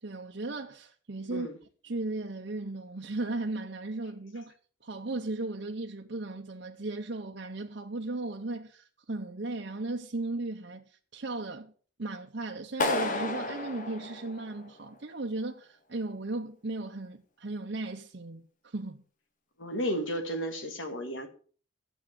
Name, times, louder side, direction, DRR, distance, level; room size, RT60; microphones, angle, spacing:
voice 1, 0.0-1.5 1.8-4.5 4.8-11.7 12.0-19.0, right 2 dB, 55° right, 0.8 m, -36 dB
Clapping, 12.8-14.8, left 2 dB, 40° left, 1.3 m, -32 dB
voice 2, 19.6-21.3, equal, 70° left, 2.1 m, -33 dB
11.5 x 8.2 x 6.8 m
head